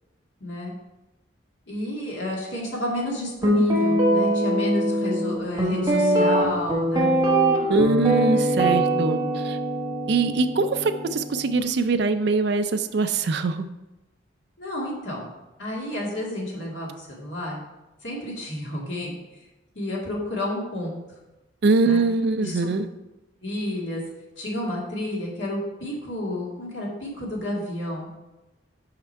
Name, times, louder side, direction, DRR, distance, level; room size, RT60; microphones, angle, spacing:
voice 1, 0.4-0.7 1.7-7.1 14.6-15.3 15.6-17.6 18.0-19.1 19.8-21.0 21.8-22.0 22.4-22.7 23.4-24.0 24.4-28.1, left 1 dB, 70° left, -4 dB, 2.0 m, -30 dB
Guitar, 3.4-11.6, right 1 dB, 20° right, 1.1 m, -22 dB
voice 2, 7.7-9.6 10.1-13.7 21.6-22.9, right 3 dB, 55° right, 8 dB, 0.4 m, -23 dB
5.8 x 5.2 x 4.6 m, 1.0 s
head